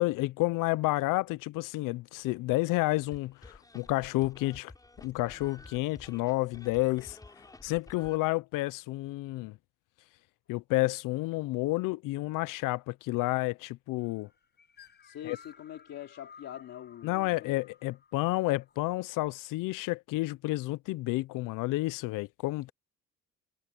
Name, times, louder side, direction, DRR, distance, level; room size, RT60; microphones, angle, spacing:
voice 1, 0.0-4.7 5.0-7.2 7.6-9.6 10.5-14.3 15.2-15.4 17.0-22.7, left 20 dB, 85° left, 0.5 m, -30 dB
sound 1, 3.1-8.2, left 2 dB, 10° left, 5.0 m, -52 dB
sound 2, 14.0-19.0, left 6 dB, 30° left, 6.5 m, -56 dB
voice 2, 15.0-17.6, left 11 dB, 55° left, 2.6 m, -44 dB
cardioid pair, 175°, 31 cm